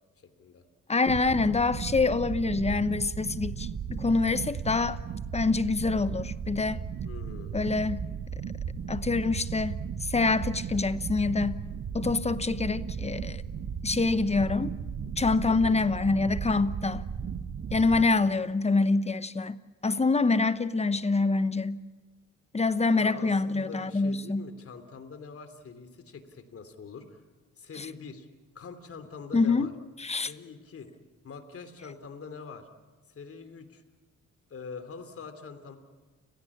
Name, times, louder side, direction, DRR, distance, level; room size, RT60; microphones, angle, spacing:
voice 1, 0.2-0.6 7.0-7.7 15.5-15.8 22.9-27.2 27.6-28.3 28.5-29.7 30.2-30.9 31.2-32.7 33.1-33.8 34.5-35.8, left 5 dB, 50° left, 3.2 m, -44 dB
voice 2, 0.9-5.0 5.3-6.8 7.5-8.0 8.9-11.6 11.9-13.4 13.8-14.7 15.2-17.1 17.7-21.8 22.5-24.5 27.8-27.9 29.3-29.7 30.0-30.3, left 3 dB, 20° left, 0.9 m, -26 dB
sound 1, 1.1-18.0, right 7 dB, 50° right, 1.5 m, -35 dB
30.0 x 16.5 x 8.6 m
cardioid pair, 90°, 30 cm